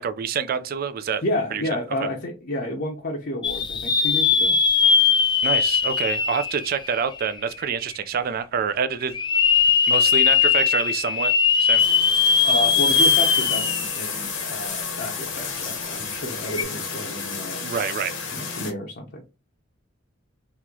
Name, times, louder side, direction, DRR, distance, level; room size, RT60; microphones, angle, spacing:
voice 1, 0.0-1.2 1.5-1.6 5.4-9.2 9.9-11.3 11.6-11.8 17.6-18.1, right 6 dB, 50° right, 0.4 m, -26 dB
voice 2, 1.2-4.6 12.4-17.7 18.3-19.2, left 1 dB, 55° left, 0.7 m, -30 dB
sound 1, 3.4-7.4 7.9-8.0 9.1-14.0 14.4-14.5 16.5-16.6, left 6 dB, 25° left, 0.4 m, -20 dB
sound 2, 11.8-18.7, left 5 dB, 70° left, 1.0 m, -31 dB
3.0 x 2.9 x 3.6 m
head